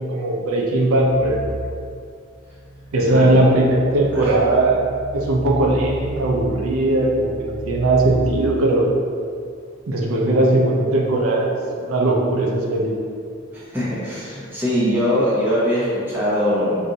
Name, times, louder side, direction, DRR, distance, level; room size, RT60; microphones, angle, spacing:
voice 1, 0.0-1.4 2.9-4.8 5.1-8.8 9.9-13.0, right 2 dB, 80° right, -1 dB, 0.5 m, -19 dB
sound 1, 1.0-8.3, right 2 dB, 30° right, 0.3 m, -32 dB
voice 2, 13.5-16.8, equal, 10° right, -11 dB, 0.7 m, -22 dB
2.6 x 2.4 x 4.0 m, 2.3 s
head